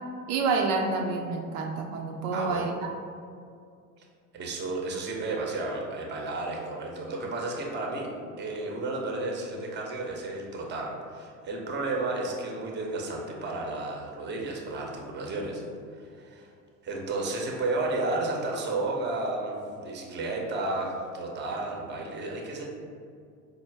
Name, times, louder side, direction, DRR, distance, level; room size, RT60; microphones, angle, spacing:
voice 1, 0.3-2.9, right 4 dB, 65° right, 2 dB, 0.5 m, -28 dB
voice 2, 2.3-2.7 4.3-8.1 8.4-15.6 15.9-16.5 16.8-22.6, right 2 dB, 25° right, 0 dB, 0.7 m, -32 dB
4.4 x 2.1 x 3.3 m, 2.3 s
hypercardioid pair, 80°, 47 cm